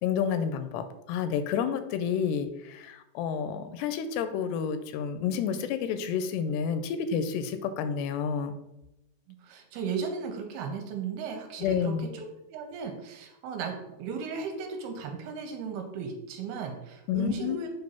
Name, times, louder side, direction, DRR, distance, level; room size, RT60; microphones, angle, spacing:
voice 1, 0.0-8.5 11.6-12.1 17.1-17.6, left 7 dB, 85° left, 10 dB, 2.6 m, -30 dB
voice 2, 9.4-13.7 14.0-17.7, right 5 dB, 80° right, 3 dB, 2.6 m, -36 dB
7.4 x 2.6 x 5.7 m, 0.91 s
omnidirectional pair, 4.7 m